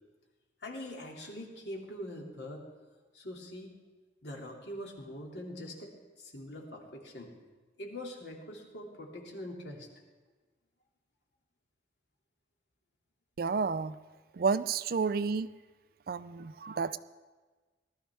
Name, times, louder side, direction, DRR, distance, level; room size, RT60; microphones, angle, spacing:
voice 1, 0.6-2.7 3.1-3.8 4.2-7.3 7.8-9.9, left 1 dB, 75° left, 0 dB, 2.5 m, -43 dB
voice 2, 13.4-14.0 14.3-15.5 16.1-17.0, right 5 dB, 55° right, 15 dB, 0.4 m, -30 dB
19.5 x 13.0 x 3.5 m, 1.3 s
head